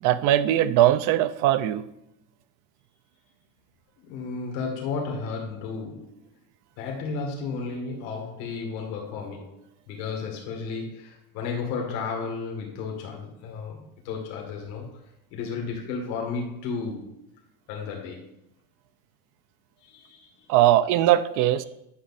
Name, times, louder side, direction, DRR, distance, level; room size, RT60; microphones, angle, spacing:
voice 1, 0.0-1.8 20.5-21.6, right 13 dB, 65° right, 13 dB, 0.6 m, -20 dB
voice 2, 4.0-6.2 6.8-9.5 9.9-15.0 15.3-17.2 17.7-18.3 19.8-20.5, left 4 dB, 90° left, 1 dB, 1.9 m, -33 dB
9.8 x 5.9 x 4.1 m, 0.82 s
cardioid pair, 150°, 34 cm